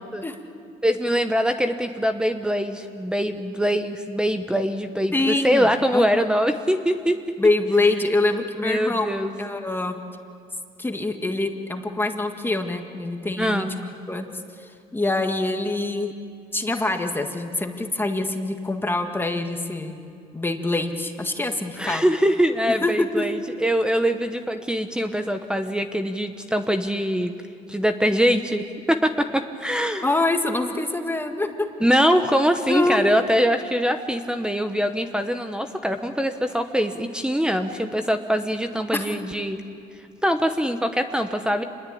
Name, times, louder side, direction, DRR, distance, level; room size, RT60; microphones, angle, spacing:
voice 1, 0.8-7.2 8.6-9.3 13.4-13.7 21.8-27.3 27.7-30.0 31.8-39.6 40.2-41.6, equal, 5° right, 7 dB, 1.0 m, -23 dB
voice 2, 5.1-6.3 7.4-10.0 10.8-13.7 14.1-14.3 14.6-16.1 16.5-20.0 20.3-22.1 22.8-23.3 30.0-31.5 32.7-33.1 38.9-39.1, left 2 dB, 10° left, 4 dB, 1.8 m, -25 dB
27.0 x 21.0 x 8.6 m, 2.5 s
cardioid pair, 110°, 17 cm